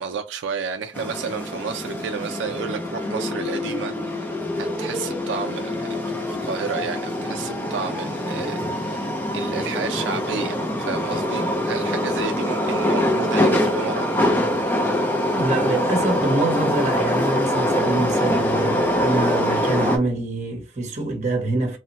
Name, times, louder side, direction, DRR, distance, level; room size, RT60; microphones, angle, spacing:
voice 1, 0.0-14.1, right 5 dB, 85° right, 0.4 m, -31 dB
sound 1, 0.9-20.0, left 1 dB, 10° left, 0.4 m, -24 dB
voice 2, 15.3-21.8, right 2 dB, 40° right, 0.9 m, -25 dB
3.1 x 2.1 x 2.8 m
head